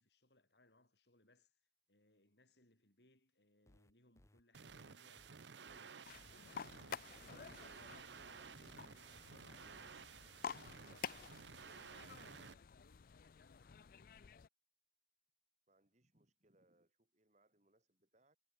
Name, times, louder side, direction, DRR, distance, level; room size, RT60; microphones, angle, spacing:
voice 1, 0.0-10.8 11.5-14.1, left 2 dB, 70° left, 5.9 m, -72 dB
sound 1, 3.7-11.4, left 1 dB, 15° left, 0.7 m, -68 dB
sound 2, 4.5-12.5, right 6 dB, 85° right, 0.9 m, -55 dB
sound 3, 6.0-14.5, left 7 dB, 55° left, 0.4 m, -51 dB
voice 2, 15.7-18.4, right 1 dB, 40° right, 3.9 m, -75 dB
head